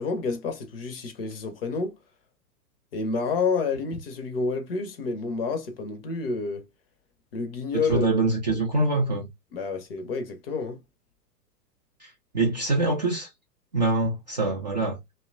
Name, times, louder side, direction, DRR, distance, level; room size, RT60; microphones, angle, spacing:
voice 1, 0.0-2.0 2.9-6.7 7.3-8.3 9.5-10.8, left 4 dB, 40° left, 0.5 m, -29 dB
voice 2, 7.9-9.3 12.0-13.3 13.7-15.0, right 2 dB, 30° right, 0.3 m, -24 dB
2.8 x 2.1 x 2.4 m
figure-of-eight pair, 110°, 49 cm